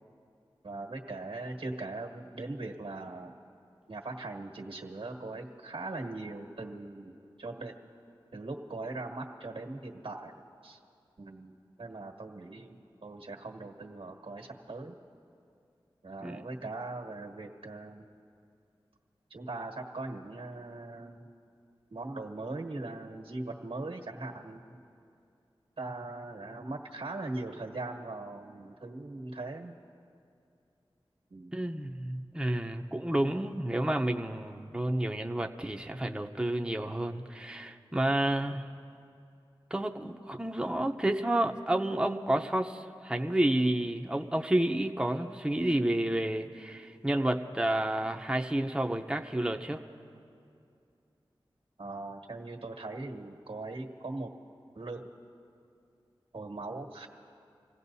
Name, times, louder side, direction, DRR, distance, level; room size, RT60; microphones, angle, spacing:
voice 1, 0.6-3.3 3.9-7.8 8.3-10.8 11.2-15.0 16.0-18.1 19.3-21.3 21.9-24.8 25.8-29.8 31.3-31.6 51.8-54.3 54.7-55.1 56.3-57.1, right 2 dB, 85° right, 2 dB, 1.4 m, -40 dB
voice 2, 31.5-38.6 39.7-49.8, right 1 dB, 10° right, 3 dB, 0.7 m, -30 dB
28.0 x 16.5 x 2.7 m, 2.5 s
wide cardioid pair, 45°, 9 cm